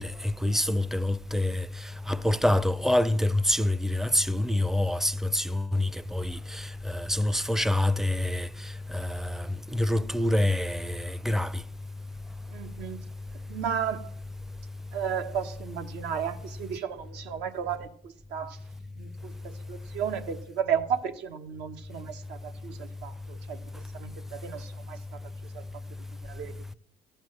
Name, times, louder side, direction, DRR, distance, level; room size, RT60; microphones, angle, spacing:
voice 1, 0.0-1.7 2.1-8.5 8.9-9.5 9.7-11.5, left 1 dB, ahead, 0.4 m, -26 dB
voice 2, 12.5-13.0 13.5-14.1 14.9-18.6 19.0-25.6 26.2-26.7, right 8 dB, 85° right, 1.2 m, -34 dB
13.5 x 8.0 x 6.5 m
cardioid pair, 110°, 17 cm